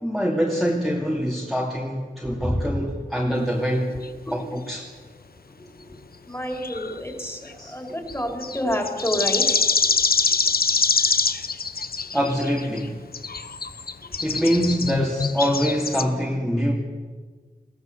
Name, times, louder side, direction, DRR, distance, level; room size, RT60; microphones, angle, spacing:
voice 1, 0.0-3.9 4.3-4.9 7.6-7.7 12.1-13.0 14.2-16.7, equal, ahead, -2 dB, 2.5 m, -24 dB
voice 2, 2.4-2.7 4.3-4.4 6.3-9.6 14.5-14.7, equal, 15° left, 3 dB, 4.1 m, -28 dB
sound 1, 4.0-4.1 6.5-7.5 8.1-12.9 13.1-16.0, left 4 dB, 70° left, 0.9 m, -24 dB
21.0 x 16.0 x 7.9 m, 1.5 s
wide cardioid pair, 60°, 16 cm